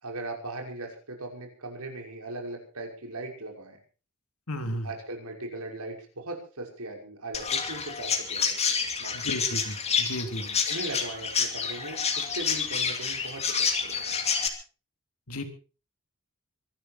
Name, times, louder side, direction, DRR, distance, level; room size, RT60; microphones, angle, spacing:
voice 1, 0.0-3.8 4.8-9.3 10.7-14.1, right 2 dB, 85° right, 2 dB, 5.9 m, -39 dB
voice 2, 4.5-4.9 9.1-10.6 15.3-15.4, left 1 dB, 75° left, 6 dB, 3.2 m, -33 dB
Chirp tweet, 7.3-14.5, left 6 dB, 30° left, 2.6 m, -28 dB
24.0 x 12.5 x 4.5 m, 0.37 s
head